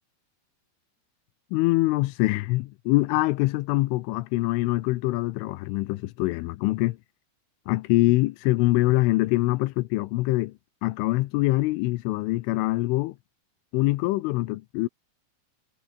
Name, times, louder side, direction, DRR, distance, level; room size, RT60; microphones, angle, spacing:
voice 1, 1.5-7.0 7.7-10.5 10.8-13.2 13.7-14.9, left 20 dB, 85° left, 3.3 m, -24 dB
omnidirectional pair, 5.7 m